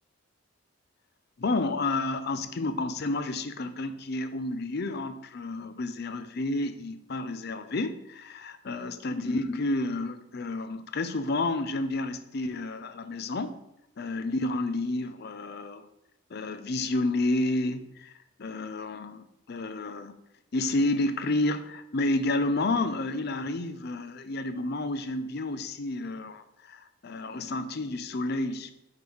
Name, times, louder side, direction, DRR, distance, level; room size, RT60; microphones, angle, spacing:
voice 1, 1.4-13.6 14.0-15.9 16.3-18.1 18.4-20.2 20.5-28.7, left 2 dB, 50° left, 11 dB, 0.5 m, -30 dB
5.2 x 4.6 x 6.2 m, 0.84 s
head